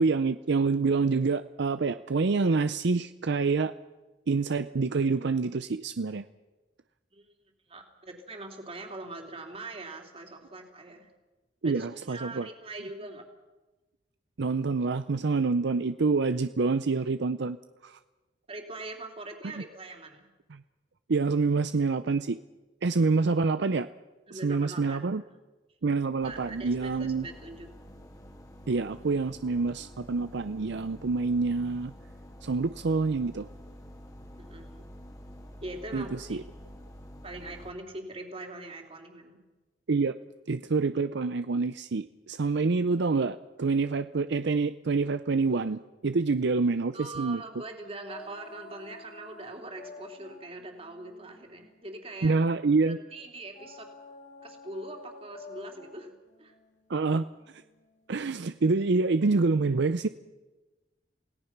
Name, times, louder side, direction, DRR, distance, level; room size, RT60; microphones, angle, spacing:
voice 1, 0.0-3.7 4.3-6.2 11.6-12.5 14.4-17.6 17.8-18.0 20.5-20.6 21.1-22.4 22.8-23.9 24.3-25.2 25.8-27.3 28.7-31.9 32.4-33.5 35.9-36.0 36.3-36.4 39.9-40.1 40.5-47.4 52.2-53.0 56.9-57.2 58.1-60.1, right 4 dB, 65° right, 11 dB, 0.6 m, -27 dB
voice 2, 7.7-11.1 11.6-13.2 18.5-20.3 24.3-25.1 26.2-27.7 34.4-34.8 35.6-36.5 37.2-39.4 46.9-52.4 52.8-53.9 54.4-56.5, right 2 dB, 35° right, 2 dB, 3.2 m, -42 dB
sound 1, 26.2-37.7, equal, 20° left, 2.4 m, -48 dB
sound 2, 48.0-52.7 53.5-58.2, left 3 dB, 40° left, 2.0 m, -50 dB
28.0 x 17.5 x 6.0 m, 1.2 s
head